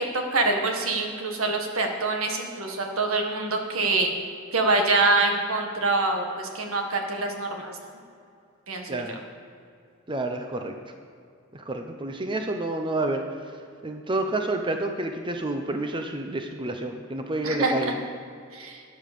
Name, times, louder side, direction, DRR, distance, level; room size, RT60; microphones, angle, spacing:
voice 1, 0.0-4.1 4.5-7.9 8.7-9.0 17.4-17.9 18.5-18.8, right 3 dB, 80° right, 3 dB, 1.8 m, -25 dB
voice 2, 8.9-9.2 10.1-10.9 11.5-13.6 13.8-17.9, right 2 dB, 25° right, 4 dB, 0.8 m, -29 dB
12.5 x 9.4 x 6.8 m, 2.4 s
head